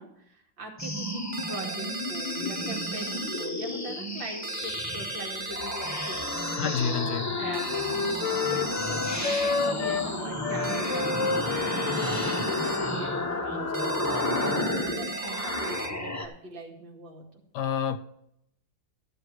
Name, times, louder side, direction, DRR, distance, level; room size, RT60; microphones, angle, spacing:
voice 1, 0.0-6.3 6.6-6.9 7.4-17.4, right 1 dB, 75° right, 3.1 m, -42 dB
sound 1, 0.8-16.3, left 1 dB, 10° left, 0.8 m, -32 dB
sound 2, 1.3-3.5 4.4-6.6 7.5-9.7 10.6-12.8 13.7-15.9, right 5 dB, 60° right, 0.6 m, -38 dB
Wind instrument woodwind instrument, 6.2-10.1 10.4-14.7, left 5 dB, 90° left, 0.6 m, -32 dB
voice 2, 6.6-7.4 17.5-18.0, left 7 dB, 65° left, 1.3 m, -28 dB
13.0 x 7.8 x 4.8 m
omnidirectional pair, 2.1 m